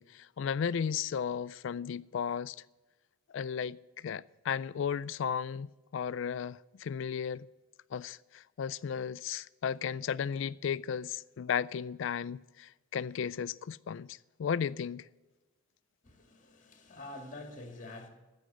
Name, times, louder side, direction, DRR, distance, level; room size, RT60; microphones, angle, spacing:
voice 1, 0.0-2.6 3.3-5.7 5.9-7.5 7.9-15.1, left 7 dB, 60° left, 0.3 m, -35 dB
voice 2, 16.0-18.1, left 2 dB, 35° left, 1.9 m, -46 dB
15.0 x 6.3 x 7.9 m
head